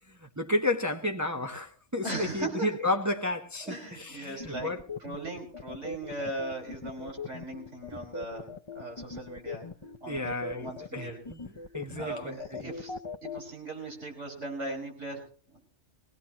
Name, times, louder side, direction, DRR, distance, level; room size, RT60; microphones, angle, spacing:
voice 1, 0.1-4.8 7.9-8.0 8.4-8.5 10.1-12.7, left 1 dB, 15° right, 0.8 m, -32 dB
voice 2, 2.0-2.7 3.6-4.7 5.0-9.7 10.0-11.3 12.0-12.9 13.2-15.6, right 2 dB, 80° right, 5.6 m, -39 dB
sound 1, 4.4-13.4, left 4 dB, 25° left, 0.9 m, -40 dB
22.5 x 18.0 x 3.0 m
omnidirectional pair, 1.2 m